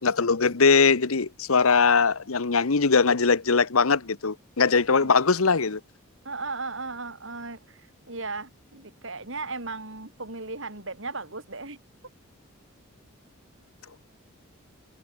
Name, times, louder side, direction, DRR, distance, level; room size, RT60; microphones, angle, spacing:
voice 1, 0.0-5.8, left 5 dB, 80° left, 1.1 m, -21 dB
voice 2, 6.2-11.8, right 3 dB, 60° right, 4.9 m, -36 dB
head